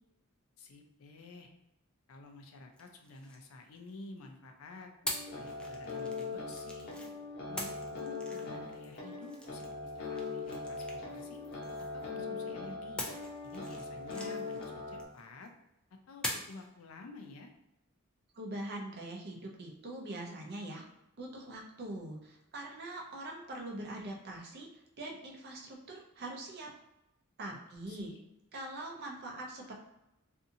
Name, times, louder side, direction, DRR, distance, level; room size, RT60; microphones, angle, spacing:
voice 1, 0.6-1.5 2.1-4.9 5.4-7.1 7.5-11.4 11.9-13.1 13.4-15.5 16.1-17.5 27.5-27.6 27.9-28.2, left 3 dB, 75° left, 4 dB, 0.4 m, -51 dB
sound 1, 2.7-4.2 5.1-7.1 7.6-12.2 13.0-15.5 16.2-16.7, left 1 dB, 5° left, 0.3 m, -44 dB
sound 2, 5.0-15.0, left 3 dB, 50° left, 0.8 m, -41 dB
voice 2, 18.3-20.9 21.2-26.7 27.4-28.1 28.5-29.7, right 1 dB, 50° right, 0 dB, 0.6 m, -43 dB
2.6 x 2.4 x 2.6 m, 0.88 s
head